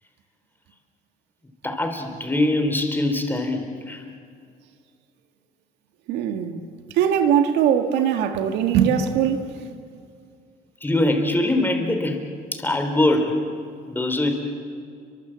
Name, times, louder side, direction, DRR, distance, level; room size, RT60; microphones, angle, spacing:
voice 1, 1.6-4.0 10.8-12.2 12.5-13.5 13.9-14.3, left 1 dB, 10° left, 3.6 m, -22 dB
voice 2, 6.1-6.7 6.9-9.4, right 8 dB, 90° right, 2.0 m, -21 dB
30.0 x 23.5 x 7.7 m
cardioid pair, 110°, 17 cm